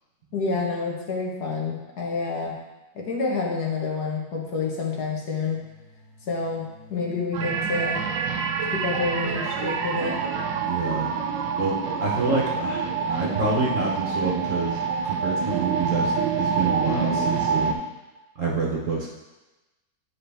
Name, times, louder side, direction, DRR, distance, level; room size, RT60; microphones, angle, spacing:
voice 1, 0.3-2.6 2.9-5.6 6.3-8.0 8.7-10.2, left 4 dB, 60° left, -2 dB, 1.6 m, -28 dB
sound 1, 5.5-14.0, left 3 dB, 45° left, 1.1 m, -48 dB
sound 2, 7.3-17.7, right 5 dB, 90° right, 1.4 m, -26 dB
voice 2, 10.7-11.1 11.6-14.8 15.0-17.8 18.4-19.1, right 3 dB, 50° right, -2 dB, 1.2 m, -27 dB
9.5 x 4.2 x 3.4 m, 1.1 s
omnidirectional pair, 2.0 m